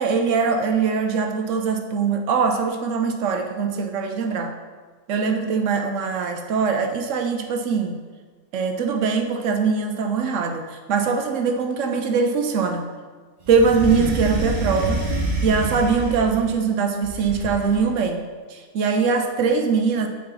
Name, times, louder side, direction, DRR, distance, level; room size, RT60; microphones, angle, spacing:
voice 1, 0.0-4.5 5.1-8.0 8.5-12.9 13.5-15.0 15.4-18.2 18.5-20.1, right 5 dB, 60° right, 5 dB, 0.9 m, -22 dB
sound 1, 13.4-16.5 17.0-17.9, right 2 dB, 35° right, 0.9 m, -27 dB
8.6 x 4.2 x 3.9 m, 1.4 s
omnidirectional pair, 1.6 m